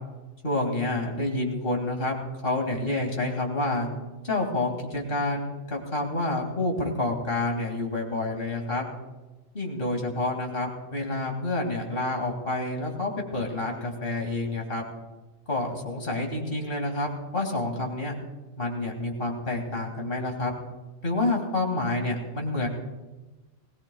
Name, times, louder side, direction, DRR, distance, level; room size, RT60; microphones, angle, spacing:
voice 1, 0.4-2.1 2.4-3.9 4.2-8.8 9.5-14.8 15.5-18.2 18.6-20.5 21.0-22.7, left 2 dB, 40° left, 1 dB, 2.6 m, -28 dB
20.5 x 17.5 x 2.3 m, 1.1 s
omnidirectional pair, 1.5 m